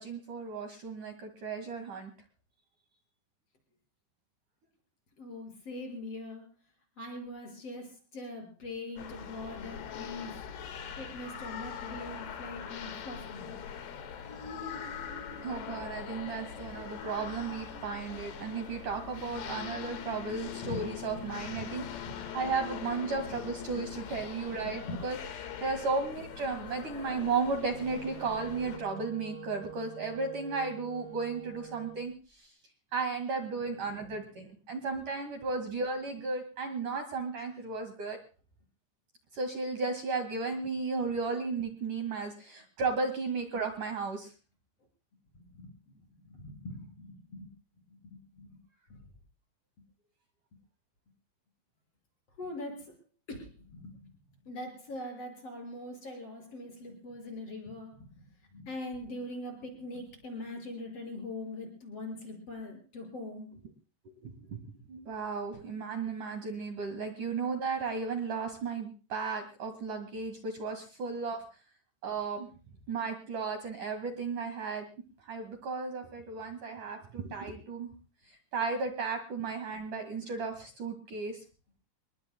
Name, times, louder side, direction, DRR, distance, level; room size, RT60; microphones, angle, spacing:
voice 1, 0.0-2.1 15.4-21.8 22.3-25.2 25.6-32.5 32.9-38.2 39.3-44.3 64.0-64.6 64.9-71.4 72.0-72.5 72.9-74.9 75.2-77.9 78.5-81.4, right 4 dB, 55° right, 5 dB, 3.0 m, -34 dB
voice 2, 5.2-6.5 7.0-10.5 11.0-13.7 20.5-22.3 23.3-23.4 24.1-24.3 24.6-25.0 29.0-29.1 33.6-34.1 37.4-37.5 45.5-47.5 47.9-48.5 48.9-49.0 52.4-53.0 53.3-54.2 54.4-63.5, left 2 dB, 35° left, 3 dB, 6.6 m, -43 dB
sound 1, 9.0-28.8, left 8 dB, 70° left, 3.8 m, -42 dB
Wind instrument woodwind instrument, 27.6-32.1, right 5 dB, 35° right, 1.0 m, -46 dB
28.0 x 21.5 x 2.2 m, 0.36 s
omnidirectional pair, 5.2 m